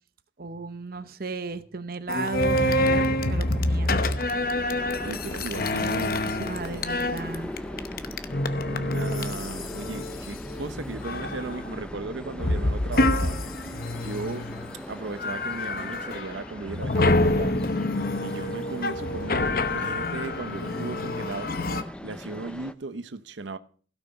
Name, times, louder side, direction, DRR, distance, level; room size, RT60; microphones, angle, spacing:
voice 1, 0.4-3.9 6.2-7.5, right 3 dB, 50° right, 0.8 m, -35 dB
sound 1, 2.1-10.6 11.0-11.7 12.4-14.8 15.2-16.4 16.6-21.8, left 1 dB, 50° left, 0.9 m, -27 dB
sound 2, 2.8-22.7, equal, 5° left, 0.5 m, -39 dB
voice 2, 5.0-6.4 6.7-6.8 8.7-13.4 14.0-14.4 14.9-17.6 18.2-23.6, right 3 dB, 85° right, 0.8 m, -36 dB
16.5 x 6.1 x 6.7 m
head